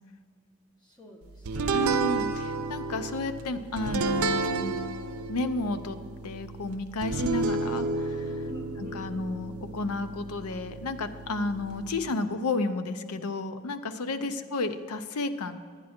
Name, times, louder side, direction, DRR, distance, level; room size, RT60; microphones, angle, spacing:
voice 1, 0.8-1.9 8.4-9.1 11.4-11.5 14.1-14.4, equal, 20° left, 0 dB, 1.2 m, -46 dB
sound 1, 1.5-12.1, right 3 dB, 75° right, 0.6 m, -32 dB
voice 2, 1.7-4.7 5.3-6.0 6.2-8.3 8.9-15.6, left 2 dB, 85° left, 10 dB, 0.6 m, -32 dB
10.5 x 10.0 x 4.3 m, 2.1 s
head